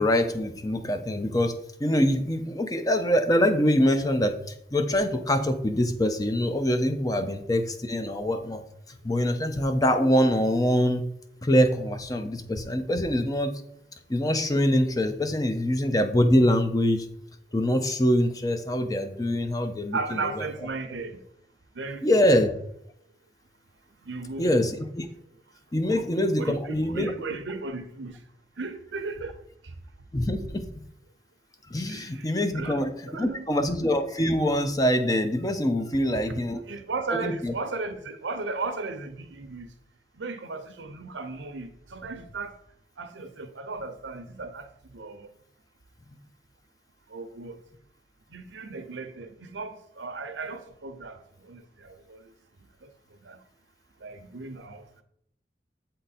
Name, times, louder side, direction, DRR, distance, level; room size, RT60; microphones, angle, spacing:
voice 1, 0.0-4.4 4.7-8.6 9.0-11.0 11.4-13.5 14.1-17.1 17.5-20.3 22.0-22.5 24.4-25.1 25.7-27.1 30.1-30.7 31.7-36.6 37.1-37.5, equal, 20° left, 0.5 m, -24 dB
voice 2, 19.9-21.2 21.7-22.2 24.0-24.7 25.8-26.0 26.4-28.2 28.6-29.4 31.9-32.8 33.1-33.5 36.3-36.4 36.7-39.7 40.2-42.6 43.0-45.3 47.1-47.6 48.3-52.2 52.8-52.9 53.3-53.4 54.0-55.0, right 3 dB, 85° right, 0.8 m, -36 dB
7.8 x 3.8 x 4.2 m
head